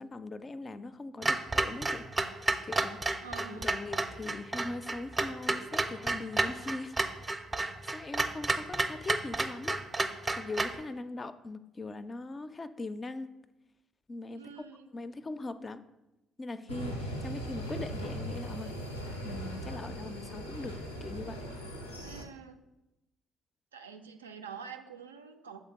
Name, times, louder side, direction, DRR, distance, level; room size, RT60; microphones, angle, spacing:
voice 1, 0.0-2.1 2.3-7.0 7.5-13.3 14.1-14.5 14.9-15.8 16.4-18.8 19.2-21.4, left 3 dB, 30° left, 12 dB, 0.4 m, -41 dB
Clock, 1.2-10.8, right 2 dB, 20° right, 0.5 m, -31 dB
voice 2, 3.2-3.7 14.4-14.9 22.0-22.6 23.7-25.6, right 6 dB, 80° right, 7 dB, 0.3 m, -46 dB
sound 1, 16.7-22.2, right 1 dB, 85° left, 0.5 m, -39 dB
7.2 x 3.8 x 3.7 m, 0.97 s
figure-of-eight pair, 45°, 0 cm